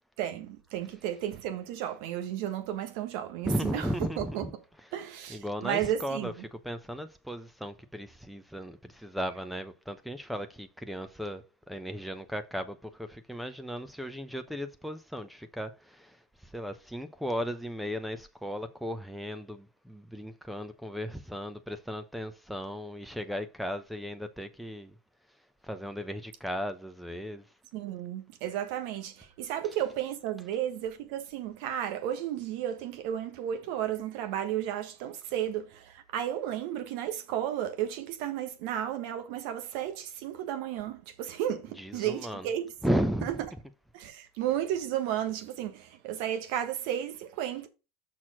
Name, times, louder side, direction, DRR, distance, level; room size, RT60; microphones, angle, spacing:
voice 1, 0.2-3.9 4.2-4.5 4.9-6.3 27.7-42.6 43.2-43.3 43.9-47.7, right 11 dB, 65° right, 1.3 m, -33 dB
voice 2, 3.5-4.5 5.3-24.9 25.6-27.5 41.8-42.5 42.8-43.3, equal, ahead, 0.8 m, -36 dB
6.3 x 4.2 x 6.0 m
hypercardioid pair, 95°, 0 cm